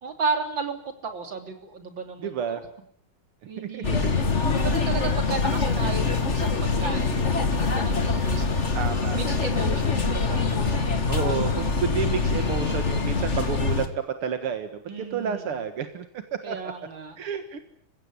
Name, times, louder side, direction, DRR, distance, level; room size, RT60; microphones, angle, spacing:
voice 1, 0.0-2.6 3.5-4.0 4.5-8.5 9.1-10.9 14.9-15.6 16.4-17.2, right 4 dB, 60° right, 6 dB, 3.8 m, -34 dB
voice 2, 2.2-2.6 3.6-4.0 8.7-9.2 11.1-13.8 14.2-14.7 15.0-16.7 17.2-17.6, right 7 dB, 90° right, 8 dB, 2.5 m, -30 dB
sound 1, 3.8-13.9, left 4 dB, 35° left, 2.1 m, -24 dB
29.0 x 16.0 x 9.7 m, 0.68 s
omnidirectional pair, 2.3 m